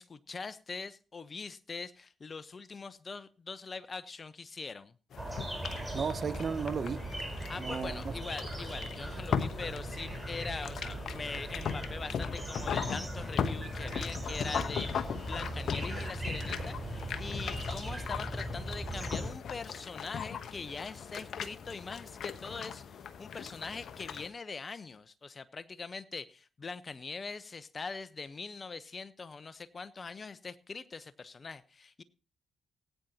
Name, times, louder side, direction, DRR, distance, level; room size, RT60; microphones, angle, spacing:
voice 1, 0.0-4.9 7.5-32.0, left 4 dB, 45° left, 0.9 m, -42 dB
sound 1, 5.1-24.3, left 7 dB, 65° left, 1.0 m, -39 dB
sound 2, 5.2-19.3, right 1 dB, 10° right, 4.3 m, -39 dB
voice 2, 5.9-7.1 7.6-8.1, right 6 dB, 55° right, 0.7 m, -34 dB
19.0 x 9.3 x 2.9 m
hypercardioid pair, 45°, 0 cm